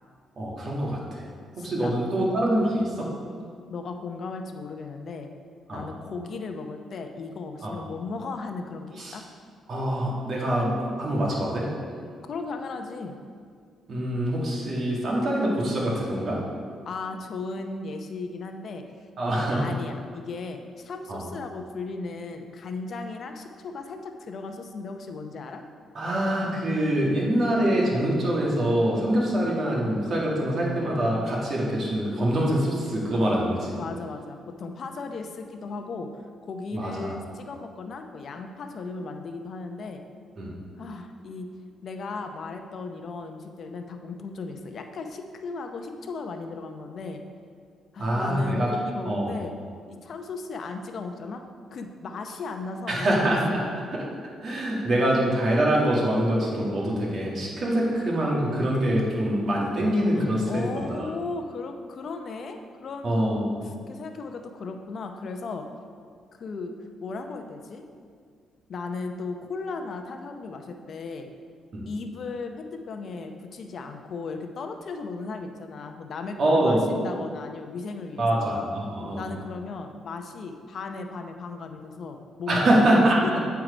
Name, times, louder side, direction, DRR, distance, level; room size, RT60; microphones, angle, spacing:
voice 1, 0.4-1.3 1.6-3.1 5.7-5.8 7.6-7.8 9.0-9.2 9.7-10.7 11.0-11.7 13.9-16.4 19.2-19.6 21.1-21.3 25.9-33.8 36.7-37.2 40.4-40.5 48.0-48.7 49.1-49.3 52.9-53.4 53.9-54.0 54.4-61.1 63.0-63.6 71.7-71.9 76.4-76.8 78.2-79.2 82.5-83.4, right 1 dB, 50° right, -3 dB, 2.0 m, -24 dB
voice 2, 1.6-1.9 2.2-2.3 3.7-5.3 5.7-9.2 12.3-13.1 16.9-18.8 19.5-25.6 33.8-40.0 40.8-41.5 41.8-47.2 47.9-49.5 49.9-51.4 51.7-53.2 53.5-53.9 60.1-63.3 63.9-65.7 66.3-67.8 68.7-71.3 71.9-78.6 79.2-83.5, left 4 dB, 55° left, 5 dB, 0.6 m, -36 dB
8.8 x 4.6 x 5.0 m, 2.1 s
cardioid pair, 90°, 0 cm